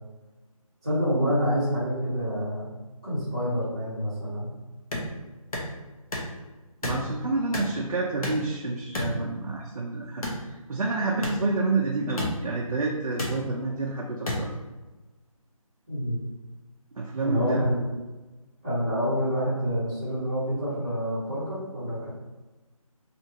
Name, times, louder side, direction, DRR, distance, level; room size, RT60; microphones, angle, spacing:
voice 1, 0.8-2.7 3.0-4.5 15.9-16.2 17.2-17.8 18.6-22.1, equal, 10° right, -14 dB, 0.9 m, -27 dB
sound 1, 4.9-5.1 5.5-5.7 6.1-6.3 6.8-7.0 7.5-7.7 8.2-8.5 8.9-9.1 10.2-10.4 11.2-11.4 12.2-12.3 13.2-13.3 14.3-14.4, left 1 dB, 80° left, 0.8 m, -30 dB
voice 2, 6.8-14.5 17.0-17.6, right 3 dB, 80° right, -2 dB, 0.5 m, -29 dB
2.8 x 2.5 x 2.8 m, 1.2 s
figure-of-eight pair, 180°, 18 cm